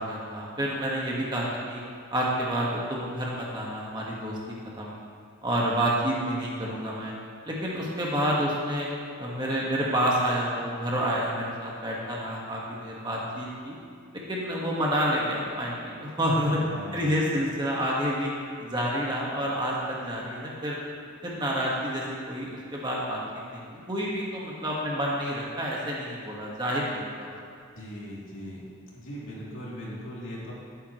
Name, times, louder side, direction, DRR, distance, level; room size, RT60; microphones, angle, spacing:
voice 1, 0.0-1.8 2.1-4.4 4.8-5.0 5.4-7.1 7.4-8.9 9.2-13.7 14.1-16.6 16.9-18.3 18.6-20.8 21.2-23.2 23.5-27.3, equal, 20° right, -4 dB, 1.6 m, -29 dB
voice 2, 16.2-17.1 27.7-28.6 28.9-30.5, equal, 65° left, -6 dB, 2.9 m, -39 dB
18.0 x 8.9 x 3.2 m, 2.3 s
head